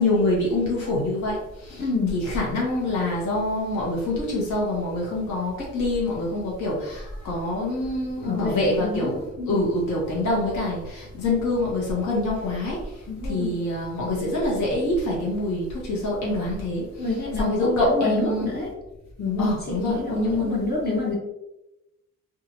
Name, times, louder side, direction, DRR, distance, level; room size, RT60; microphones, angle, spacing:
voice 1, 0.0-1.8 2.1-12.9 13.2-17.1 17.3-18.5 19.4-20.6, left 1 dB, 70° left, -4 dB, 1.1 m, -25 dB
voice 2, 1.8-2.2 8.2-9.7 13.1-13.6 17.0-18.7 19.2-21.2, left 3 dB, 35° left, -2 dB, 0.8 m, -28 dB
2.7 x 2.5 x 2.8 m, 0.92 s
cardioid pair, 90°, 30 cm